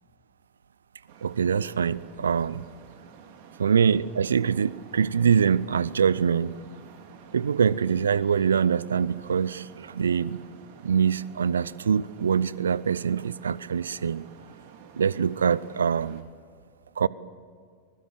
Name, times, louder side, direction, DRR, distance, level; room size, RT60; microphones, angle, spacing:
Traffic noise roadway noise, 1.1-16.2, right 6 dB, 55° right, 2.5 m, -50 dB
voice 1, 1.2-2.6 3.6-6.5 7.3-10.4 10.8-14.2 14.9-16.2 17.0-17.1, right 7 dB, 70° right, 0.6 m, -24 dB
23.5 x 21.0 x 7.8 m
figure-of-eight pair, 85°, 0 cm